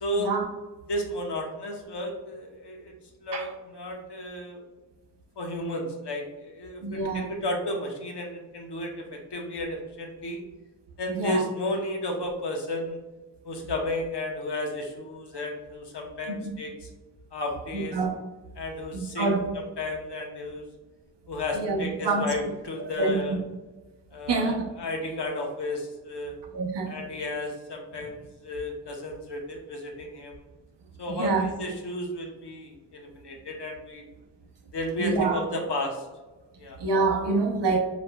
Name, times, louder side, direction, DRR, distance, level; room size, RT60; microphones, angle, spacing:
voice 1, 0.0-0.3 0.9-4.6 5.4-10.4 11.0-13.0 13.4-16.9 17.3-18.0 18.6-19.3 19.8-20.7 21.3-23.4 24.1-26.3 26.9-30.4 31.0-34.0 34.7-36.1 36.6-36.8, left 1 dB, 70° left, 1 dB, 1.0 m, -33 dB
voice 2, 6.8-7.2 11.1-11.4 16.3-16.5 17.7-18.1 18.9-19.5 21.5-22.4 22.8-23.2 24.3-24.7 26.5-26.9 31.2-31.5 35.0-35.4 36.8-37.8, right 3 dB, 80° right, 2 dB, 0.8 m, -26 dB
4.7 x 4.2 x 2.3 m, 1.2 s
cardioid pair, 60°, 41 cm